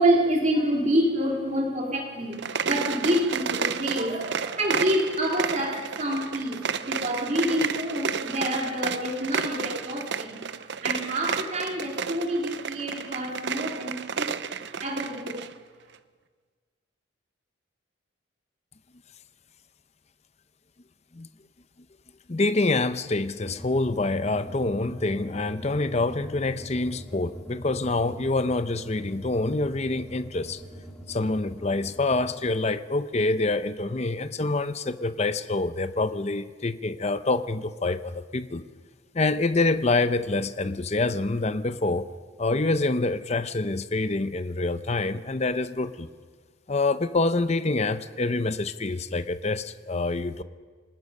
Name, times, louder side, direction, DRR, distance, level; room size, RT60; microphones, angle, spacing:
voice 1, 0.0-14.3 14.8-15.4, equal, 35° right, 0 dB, 2.7 m, -27 dB
sound 1, 2.3-15.5, right 6 dB, 60° right, 0.7 m, -31 dB
voice 2, 22.3-30.6 31.1-38.6 39.1-42.1 42.4-46.1 46.7-50.4, left 2 dB, 35° left, 12 dB, 0.7 m, -26 dB
sound 2, 23.5-32.4, equal, 5° left, 3.4 m, -43 dB
26.0 x 19.5 x 5.4 m, 1.5 s
head